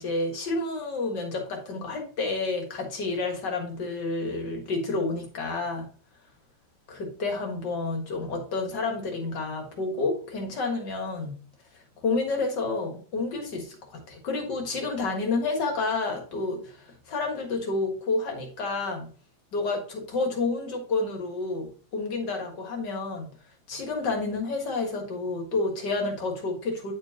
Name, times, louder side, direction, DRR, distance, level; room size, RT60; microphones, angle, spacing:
voice 1, 0.0-5.9 6.9-11.4 12.0-19.1 19.5-23.3 23.7-26.9, left 3 dB, 65° left, 2 dB, 2.3 m, -30 dB
10.0 x 4.6 x 2.8 m, 0.41 s
omnidirectional pair, 2.1 m